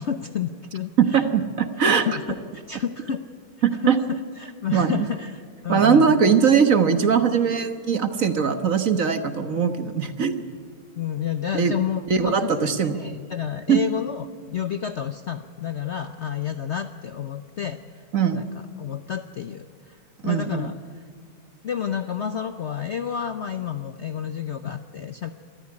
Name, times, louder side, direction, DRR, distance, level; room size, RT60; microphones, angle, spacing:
voice 1, 0.0-1.3 1.8-3.2 3.8-6.4 11.0-18.0 18.3-18.5 18.8-20.8 21.6-25.3, left 8 dB, 60° left, 9 dB, 0.7 m, -30 dB
voice 2, 1.0-2.1 3.6-4.0 4.7-5.1 5.7-10.4 11.5-11.7 12.1-13.0 13.7-13.8 18.1-18.5 20.2-20.7, right 6 dB, 50° right, 9 dB, 1.5 m, -20 dB
25.0 x 13.5 x 9.7 m, 2.1 s
omnidirectional pair, 1.9 m